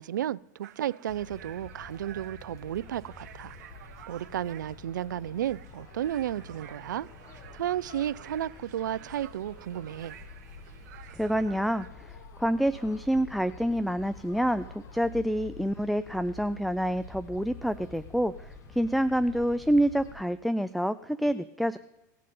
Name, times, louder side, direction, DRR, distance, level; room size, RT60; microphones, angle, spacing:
voice 1, 0.0-3.6 4.1-7.1 7.5-10.1, right 11 dB, 85° right, 0.4 m, -33 dB
sound 1, 0.6-11.9, right 11 dB, 70° right, 1.0 m, -52 dB
sound 2, 1.1-20.2, left 4 dB, 35° left, 1.5 m, -48 dB
sound 3, 5.4-5.5 5.7-8.5 9.0-10.2 11.4-15.2, left 7 dB, 60° left, 2.1 m, -56 dB
voice 2, 11.1-21.8, equal, ahead, 0.3 m, -27 dB
18.0 x 6.5 x 3.8 m
hypercardioid pair, 105°, 10 cm